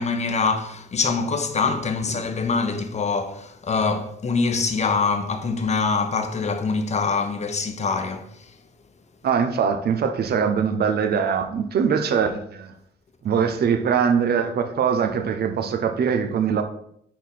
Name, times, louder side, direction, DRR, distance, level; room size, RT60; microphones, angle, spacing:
voice 1, 0.0-8.5, left 4 dB, 35° left, 0.9 m, -24 dB
voice 2, 9.2-12.7 13.2-16.6, right 7 dB, 55° right, 0.7 m, -22 dB
4.7 x 4.3 x 5.5 m
cardioid pair, 90°, 20 cm